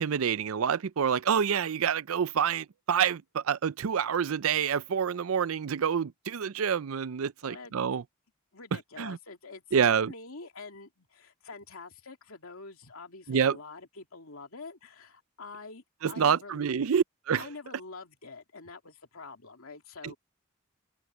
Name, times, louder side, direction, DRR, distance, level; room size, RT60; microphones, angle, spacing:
voice 1, 0.0-8.0 9.0-9.2 9.7-10.1 13.3-13.6 16.0-17.5 20.0-20.1, right 7 dB, 75° right, 0.5 m, -27 dB
voice 2, 7.4-7.7 8.5-16.7 17.4-20.2, left 3 dB, 75° left, 2.7 m, -46 dB
open air
head